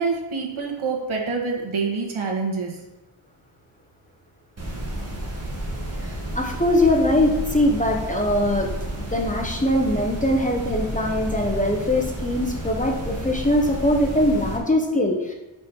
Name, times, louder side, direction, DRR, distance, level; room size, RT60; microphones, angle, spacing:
voice 1, 0.0-2.8, right 4 dB, 70° right, 0 dB, 1.6 m, -26 dB
sound 1, 4.6-14.6, right 1 dB, 30° right, 1.7 m, -31 dB
voice 2, 6.0-8.7 9.1-15.3, left 1 dB, 15° left, 1 dB, 0.9 m, -22 dB
6.2 x 5.2 x 6.0 m, 1.0 s
wide cardioid pair, 160°, 50 cm